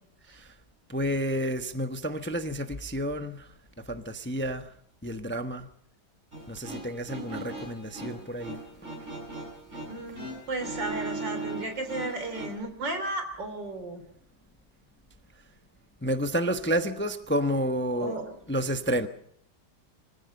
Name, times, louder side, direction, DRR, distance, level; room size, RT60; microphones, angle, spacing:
voice 1, 0.9-3.5 3.9-4.7 5.0-5.7 6.5-8.6 16.0-18.2 18.5-19.1, equal, 10° left, 0.8 m, -30 dB
sound 1, 6.3-12.6, right 2 dB, 40° right, 7.9 m, -39 dB
voice 2, 9.9-14.0 18.0-18.4, right 2 dB, 85° right, 4.0 m, -34 dB
25.0 x 15.5 x 6.8 m
omnidirectional pair, 1.9 m